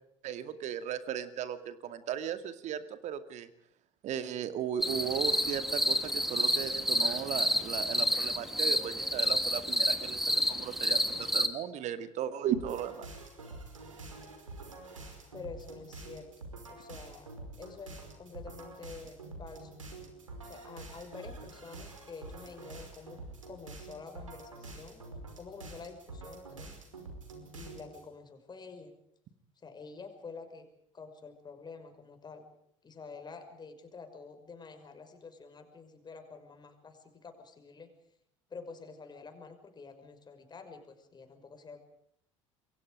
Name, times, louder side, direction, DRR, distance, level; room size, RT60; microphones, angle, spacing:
voice 1, 0.2-3.5 4.0-13.1, right 9 dB, 45° right, 11 dB, 2.3 m, -36 dB
sound 1, 4.8-11.5, equal, ahead, 2.7 m, -29 dB
sound 2, 12.5-28.1, right 2 dB, 80° right, 5.2 m, -47 dB
voice 2, 15.3-17.3 17.6-19.8 20.4-23.2 23.5-25.0 25.4-26.8 27.5-28.9 29.6-30.6 30.9-32.5 32.8-37.9 38.5-41.8, left 4 dB, 25° left, 6 dB, 5.9 m, -48 dB
28.0 x 23.5 x 5.0 m, 0.72 s
figure-of-eight pair, 65°, 16 cm